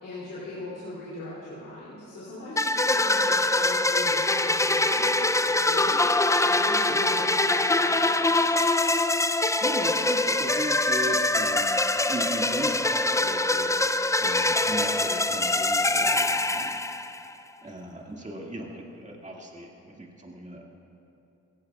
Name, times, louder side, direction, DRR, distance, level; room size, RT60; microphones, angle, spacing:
voice 1, 0.0-8.5, left 2 dB, 85° left, -10 dB, 3.0 m, -40 dB
sound 1, 2.6-17.3, left 2 dB, 10° left, 0.5 m, -24 dB
voice 2, 9.6-13.7 14.2-16.9 17.6-20.7, right 1 dB, 25° right, -1 dB, 2.1 m, -37 dB
16.5 x 16.0 x 2.4 m, 2.8 s
supercardioid pair, 45°, 31 cm